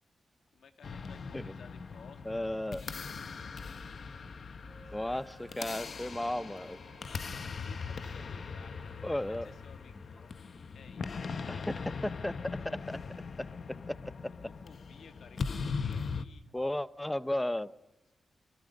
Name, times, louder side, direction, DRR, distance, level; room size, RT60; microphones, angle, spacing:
voice 1, 0.5-2.5 4.7-5.2 7.3-10.5 10.7-11.5 12.6-12.7 14.4-16.5, left 6 dB, 85° left, 7 dB, 1.9 m, -57 dB
sound 1, 0.8-16.3, left 5 dB, 55° left, 1.0 m, -40 dB
voice 2, 2.2-2.8 4.9-6.8 9.0-9.5 11.5-13.0 13.9-14.0 16.5-17.7, left 1 dB, 10° left, 16 dB, 0.7 m, -34 dB
Wind instrument woodwind instrument, 4.6-9.1, right 4 dB, 45° right, 3.1 m, -59 dB
28.0 x 22.0 x 5.3 m, 0.99 s
wide cardioid pair, 145°, 0 cm